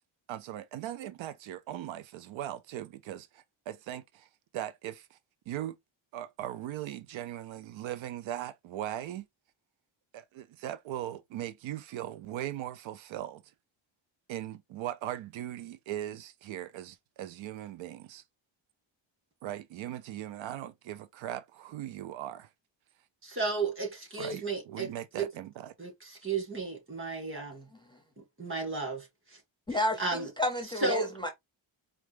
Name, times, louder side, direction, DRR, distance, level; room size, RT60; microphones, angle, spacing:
voice 1, 0.3-4.3 4.5-5.2 5.5-5.8 6.1-9.2 10.1-13.4 14.3-18.2 19.4-22.5 24.2-25.7, right 12 dB, 80° right, 0.6 m, -39 dB
voice 2, 23.2-24.9 25.2-25.3 25.8-27.7 28.4-29.1 29.7-30.3 30.8-31.1, right 3 dB, 25° right, 2.0 m, -33 dB
voice 3, 29.7-30.0 30.4-31.3, left 1 dB, 10° left, 0.6 m, -30 dB
4.5 x 2.4 x 3.2 m
wide cardioid pair, 160°, 46 cm